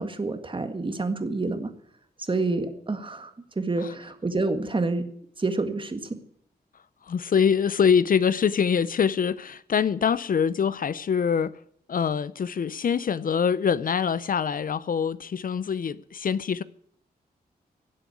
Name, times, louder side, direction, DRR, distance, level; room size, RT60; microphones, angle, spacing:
voice 1, 0.0-1.7 2.2-5.0 5.4-6.2, right 3 dB, 30° right, 1.7 m, -28 dB
voice 2, 7.1-11.5 11.9-16.6, left 7 dB, 60° left, 0.5 m, -24 dB
17.0 x 7.8 x 8.5 m
wide cardioid pair, 100°, 17 cm